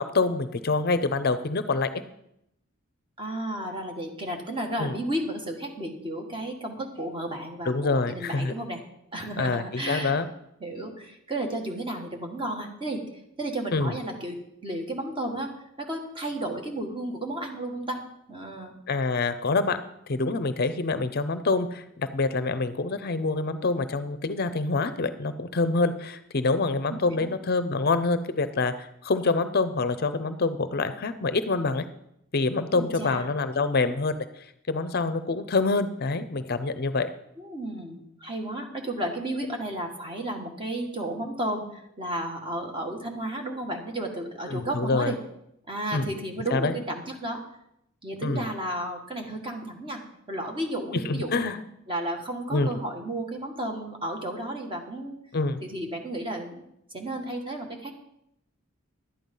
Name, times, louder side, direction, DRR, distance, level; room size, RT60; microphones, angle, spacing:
voice 1, 0.0-1.9 4.8-5.0 7.7-8.5 9.4-10.3 13.7-13.9 18.9-19.8 20.1-31.8 32.3-37.1 44.5-45.1 45.9-46.0 46.5-46.7 48.2-48.5 51.0-51.6 52.5-52.7 55.3-55.6, left 3 dB, 50° left, 12 dB, 0.6 m, -26 dB
voice 2, 3.2-8.8 9.1-10.2 10.6-13.0 13.4-15.5 15.8-18.0 18.3-18.8 26.9-27.3 32.7-33.3 37.4-45.2 45.7-47.4 48.0-50.0 50.3-51.5 51.9-55.2 55.6-56.6 56.9-57.9, right 1 dB, 25° right, 2 dB, 1.7 m, -33 dB
11.5 x 9.2 x 5.4 m, 0.77 s
head